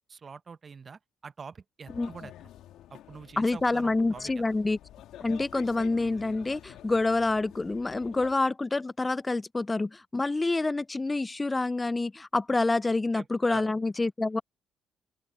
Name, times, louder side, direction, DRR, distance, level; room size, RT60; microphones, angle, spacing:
voice 1, 0.0-2.5 2.9-4.3 13.1-13.7, right 5 dB, 40° right, 1.2 m, -45 dB
sound 1, 1.9-8.3, left 12 dB, 75° left, 2.5 m, -48 dB
voice 2, 3.4-4.8 5.2-14.4, left 3 dB, 20° left, 0.5 m, -27 dB
open air
supercardioid pair, 65°, 0 cm